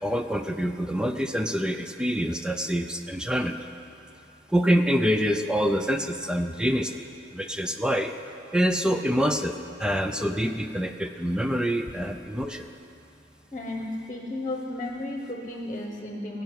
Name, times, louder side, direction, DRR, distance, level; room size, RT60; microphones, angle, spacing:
voice 1, 0.0-3.6 4.5-6.9 7.3-8.1 8.5-12.7, equal, 5° right, 7 dB, 0.4 m, -26 dB
voice 2, 13.5-16.4, left 1 dB, 20° left, 1 dB, 1.2 m, -33 dB
17.0 x 5.8 x 9.5 m, 2.9 s
head